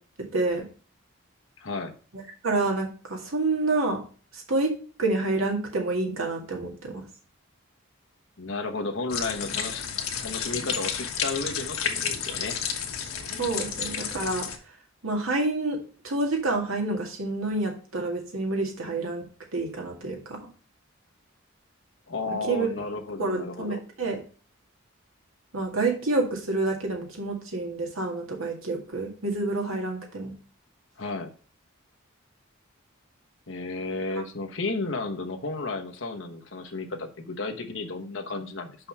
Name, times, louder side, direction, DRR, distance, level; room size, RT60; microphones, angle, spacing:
voice 1, 0.2-0.6 2.1-4.0 4.3-4.7 5.0-7.0 13.4-14.5 15.0-15.8 16.0-19.3 19.5-20.4 22.5-22.7 23.2-24.2 25.5-30.3, right 2 dB, 80° right, 1 dB, 2.1 m, -28 dB
voice 2, 1.6-1.9 8.4-9.9 10.2-12.6 22.1-23.8 31.0-31.3 33.5-38.8, left 3 dB, 65° left, 4 dB, 1.1 m, -33 dB
sound 1, 9.1-14.6, left 7 dB, 85° left, 1.2 m, -31 dB
5.9 x 5.4 x 5.4 m, 0.39 s
head